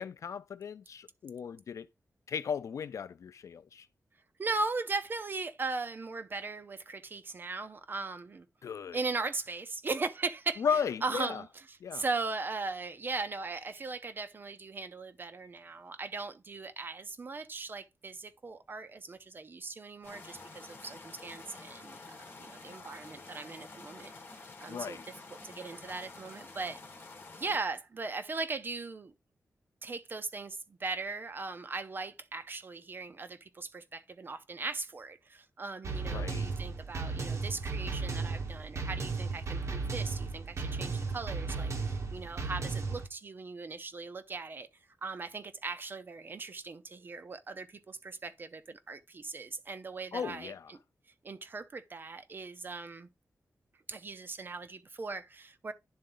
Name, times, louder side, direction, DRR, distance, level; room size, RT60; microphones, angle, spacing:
voice 1, 0.0-1.9 2.3-3.9 8.6-9.0 10.6-11.4 11.8-12.0 24.7-25.1 36.1-36.5 50.1-50.7, left 7 dB, 70° left, 0.4 m, -35 dB
voice 2, 4.4-8.5 8.9-24.1 24.6-25.0 25.4-26.8 27.4-29.1 29.8-44.7 45.0-50.8 51.1-53.1 53.9-55.7, right 3 dB, 40° right, 0.5 m, -38 dB
sound 1, 20.0-27.6, left 3 dB, 40° left, 1.7 m, -49 dB
sound 2, 35.8-43.1, right 4 dB, 60° right, 1.0 m, -35 dB
10.5 x 3.9 x 3.8 m
wide cardioid pair, 170°, 6 cm